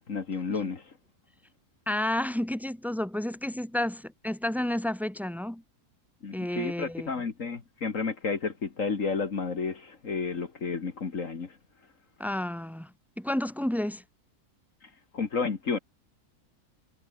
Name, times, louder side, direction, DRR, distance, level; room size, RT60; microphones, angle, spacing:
voice 1, 0.1-0.9 6.2-11.6 14.8-15.8, left 5 dB, 55° left, 2.2 m, -31 dB
voice 2, 1.9-5.6 6.3-7.1 12.2-14.0, left 1 dB, ahead, 2.5 m, -31 dB
omnidirectional pair, 1.6 m